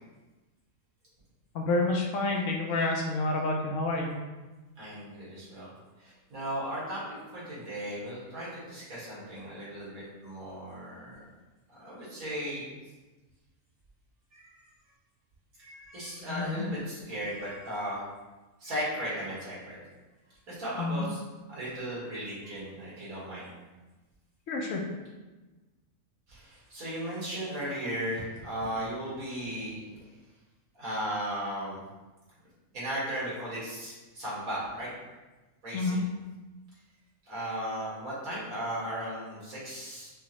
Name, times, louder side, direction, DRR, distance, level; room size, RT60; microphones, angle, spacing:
voice 1, 1.5-4.2 16.3-16.6 20.8-21.1 24.5-24.8 35.7-36.0, left 2 dB, 70° left, 1 dB, 0.9 m, -29 dB
voice 2, 4.8-5.7 6.0-7.0 7.3-11.2 11.7-12.6 14.3-14.7 15.6-18.0 18.6-19.8 20.5-21.2 21.5-23.5 26.3-29.8 30.7-31.8 32.7-34.9 35.6-36.1 37.3-40.1, equal, 85° right, -8 dB, 1.9 m, -36 dB
5.4 x 2.0 x 2.9 m, 1.2 s
omnidirectional pair, 1.4 m